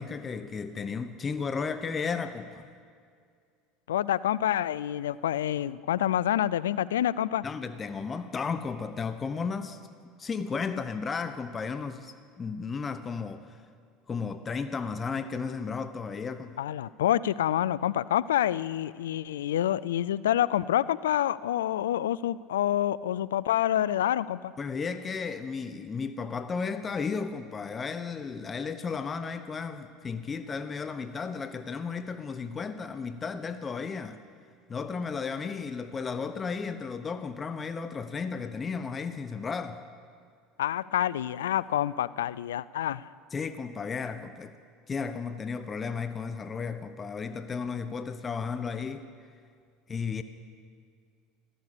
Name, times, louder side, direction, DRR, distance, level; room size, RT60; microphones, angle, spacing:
voice 1, 0.0-2.7 7.4-9.8 10.2-13.5 14.1-16.6 24.6-34.2 34.7-39.8 43.3-44.6 44.9-49.0 49.9-50.2, left 5 dB, 30° left, 10 dB, 0.8 m, -34 dB
voice 2, 3.9-7.4 16.6-24.5 40.6-43.1, left 11 dB, 85° left, 19 dB, 0.4 m, -27 dB
15.0 x 13.5 x 6.8 m, 2.2 s
hypercardioid pair, 80°, 0 cm